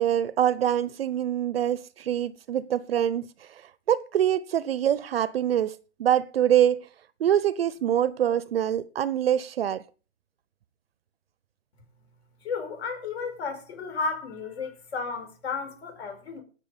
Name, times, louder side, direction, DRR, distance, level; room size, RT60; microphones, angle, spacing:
voice 1, 0.0-3.3 3.9-6.9 7.2-9.8, right 10 dB, 50° right, 0.7 m, -24 dB
voice 2, 12.4-16.4, left 4 dB, 55° left, 4.9 m, -33 dB
17.0 x 6.4 x 5.1 m
hypercardioid pair, 150°, 39 cm